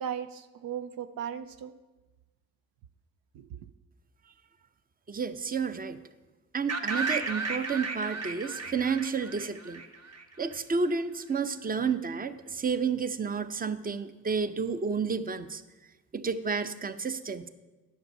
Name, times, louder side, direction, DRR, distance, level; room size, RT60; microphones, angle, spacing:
voice 1, 0.0-1.7 3.3-3.7, right 9 dB, 75° right, 11 dB, 0.5 m, -37 dB
voice 2, 5.1-6.0 6.5-9.8 10.4-15.6 16.1-17.5, right 5 dB, 25° right, 12 dB, 0.7 m, -31 dB
sound 1, 6.7-10.6, right 3 dB, 45° right, 1.0 m, -34 dB
9.6 x 6.6 x 5.5 m, 1.2 s
supercardioid pair, 50°, 36 cm